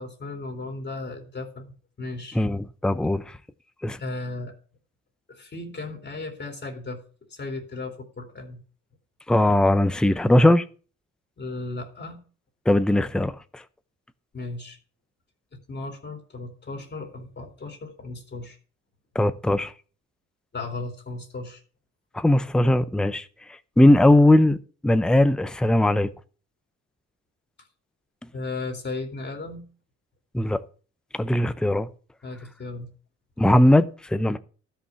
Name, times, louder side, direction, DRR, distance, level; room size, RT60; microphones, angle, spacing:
voice 1, 0.0-1.7 2.0-2.4 4.0-4.5 5.3-7.0 7.3-8.6 11.4-12.2 14.3-14.8 15.7-18.6 20.5-21.6 28.3-29.6 32.2-32.9, left 3 dB, 35° left, 2.7 m, -35 dB
voice 2, 2.3-3.4 3.8-4.0 9.3-10.6 12.7-13.6 19.1-19.7 22.1-23.2 23.8-24.6 24.8-26.1 30.3-30.6 31.1-31.9 33.4-34.4, left 1 dB, 5° left, 0.6 m, -19 dB
12.5 x 5.6 x 7.0 m
cardioid pair, 90°, 30 cm